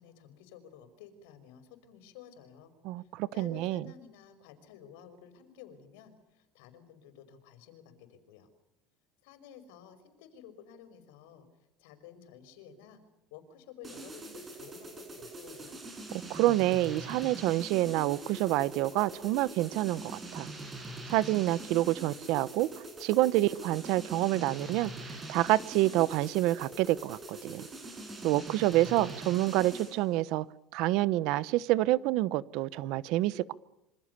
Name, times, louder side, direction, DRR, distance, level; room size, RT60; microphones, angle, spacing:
voice 1, 0.0-2.7 3.0-8.5 9.2-11.5 11.8-13.0 13.3-15.8, left 8 dB, 85° left, 10 dB, 5.4 m, -53 dB
voice 2, 2.8-3.8 16.3-20.5 21.1-22.7 23.0-27.6 28.2-30.4 30.7-33.5, right 16 dB, 60° right, 18 dB, 1.0 m, -28 dB
sound 1, 13.8-30.1, right 2 dB, 15° right, 7.3 m, -44 dB
27.5 x 26.0 x 6.9 m, 0.85 s
cardioid pair, 150°, 0 cm